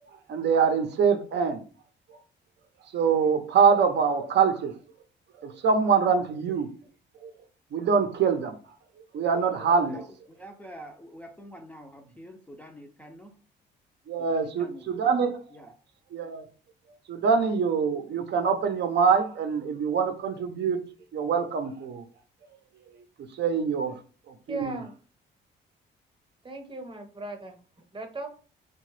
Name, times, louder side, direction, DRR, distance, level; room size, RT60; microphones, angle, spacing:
voice 1, 0.3-1.6 2.9-4.7 5.4-6.7 7.2-7.3 7.7-8.6 9.1-10.0 14.1-15.7 16.1-16.5 17.1-20.9 21.1-22.0 23.3-23.9 24.5-24.8, right 6 dB, 60° right, 0.5 m, -24 dB
voice 2, 9.9-13.4 14.2-15.1 15.5-15.7, equal, 10° left, 0.4 m, -46 dB
voice 3, 24.5-24.9 26.4-27.6 27.9-28.3, right 2 dB, 25° right, 0.8 m, -37 dB
2.8 x 2.2 x 3.1 m
cardioid pair, 90°, 20 cm